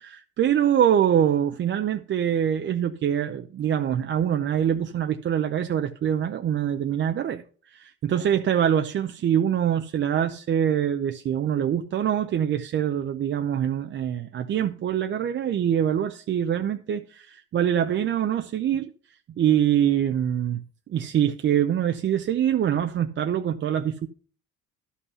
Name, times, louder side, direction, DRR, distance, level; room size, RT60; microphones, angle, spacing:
voice 1, 0.0-7.4 7.7-18.9 19.4-20.6 20.9-24.1, right 9 dB, 40° right, 0.6 m, -24 dB
11.5 x 5.6 x 5.5 m
cardioid pair, 110°, 30 cm